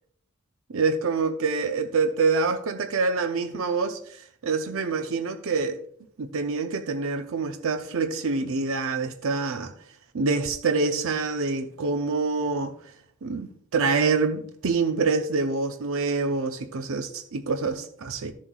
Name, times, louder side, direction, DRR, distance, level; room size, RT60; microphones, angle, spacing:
voice 1, 0.7-5.8 6.2-9.7 10.1-12.7 13.2-18.3, right 4 dB, 65° right, 0.6 m, -26 dB
13.0 x 7.4 x 2.3 m
head